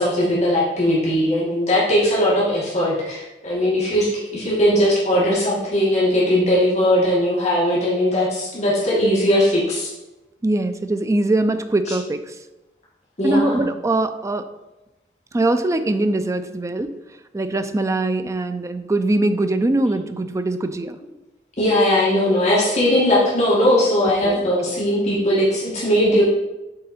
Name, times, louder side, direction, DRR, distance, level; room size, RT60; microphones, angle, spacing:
voice 1, 0.0-9.9 11.9-12.0 13.2-13.6 21.6-26.2, left 1 dB, 40° left, -7 dB, 1.9 m, -19 dB
voice 2, 10.4-12.4 13.2-14.5 15.3-17.0 17.3-21.0 24.2-24.5, right 2 dB, 20° right, 9 dB, 0.4 m, -22 dB
7.6 x 4.0 x 4.2 m, 1.0 s
head